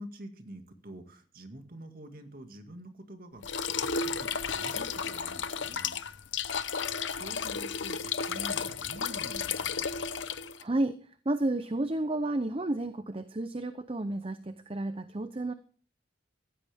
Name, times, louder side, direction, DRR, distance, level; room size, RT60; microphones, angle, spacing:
voice 1, 0.0-6.0 7.1-9.9, right 1 dB, 50° right, 5 dB, 2.1 m, -47 dB
sound 1, 3.4-10.6, left 6 dB, 75° left, 0.8 m, -33 dB
voice 2, 10.6-11.0 11.2-15.5, right 2 dB, 30° right, 10 dB, 0.7 m, -31 dB
15.5 x 14.0 x 3.6 m, 0.43 s
head